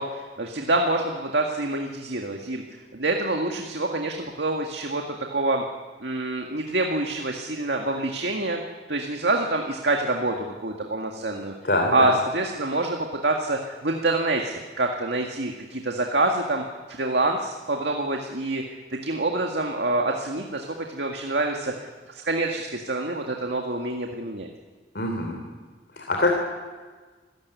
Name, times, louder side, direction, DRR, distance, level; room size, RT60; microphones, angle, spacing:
voice 1, 0.0-2.6 2.9-5.6 6.0-8.6 8.9-11.5 11.9-18.6 18.9-24.5, right 2 dB, 75° right, 2 dB, 1.9 m, -26 dB
voice 2, 11.6-12.1 24.9-25.4 26.0-26.3, left 2 dB, 65° left, 1 dB, 3.4 m, -24 dB
26.5 x 16.0 x 9.6 m, 1.4 s
head